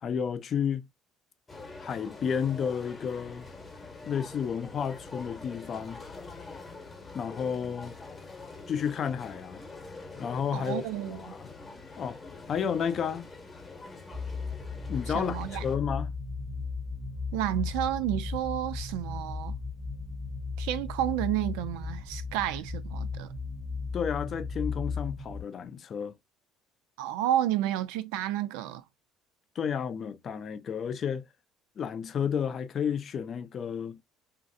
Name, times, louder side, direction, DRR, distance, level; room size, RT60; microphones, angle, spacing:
voice 1, 0.0-0.9 1.8-3.5 4.1-6.0 7.1-7.9 8.7-9.6 10.2-11.4 12.0-12.2 12.5-13.3 14.9-16.1 23.9-26.1 29.6-31.2 31.8-34.0, left 7 dB, 40° left, 0.4 m, -31 dB
sound 1, 1.5-15.8, left 3 dB, 20° left, 0.8 m, -45 dB
voice 2, 10.5-11.3 15.1-15.6 17.3-19.6 20.6-23.3 27.0-28.8, right 12 dB, 90° right, 0.4 m, -31 dB
sound 2, 14.1-25.4, left 4 dB, 40° right, 0.6 m, -36 dB
3.1 x 2.5 x 2.6 m
cardioid pair, 120°, 0 cm